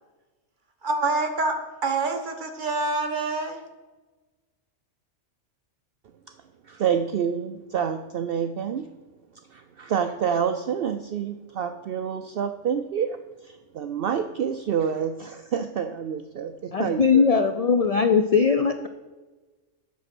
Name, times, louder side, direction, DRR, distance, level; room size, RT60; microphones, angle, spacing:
voice 1, 0.8-3.6, right 3 dB, 40° right, 4 dB, 1.3 m, -26 dB
voice 2, 6.7-8.9 9.5-17.3, right 7 dB, 60° right, 8 dB, 0.6 m, -28 dB
voice 3, 16.7-18.9, left 5 dB, 60° left, 8 dB, 0.3 m, -20 dB
8.4 x 6.4 x 6.0 m, 1.2 s
omnidirectional pair, 1.3 m